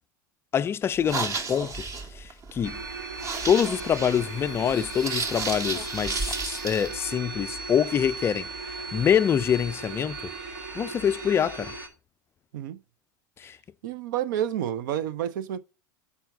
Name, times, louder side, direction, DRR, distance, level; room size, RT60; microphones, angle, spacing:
voice 1, 0.5-1.8 2.1-2.8 3.5-10.3 10.7-11.7 13.4-13.6, left 8 dB, 20° left, 0.3 m, -25 dB
sound 1, 0.9-6.9, right 4 dB, 30° right, 1.2 m, -33 dB
sound 2, 2.6-11.9, right 3 dB, 85° right, 2.0 m, -37 dB
voice 2, 13.8-15.6, right 11 dB, 65° right, 0.6 m, -29 dB
5.5 x 4.5 x 5.8 m
hypercardioid pair, 95°, 11 cm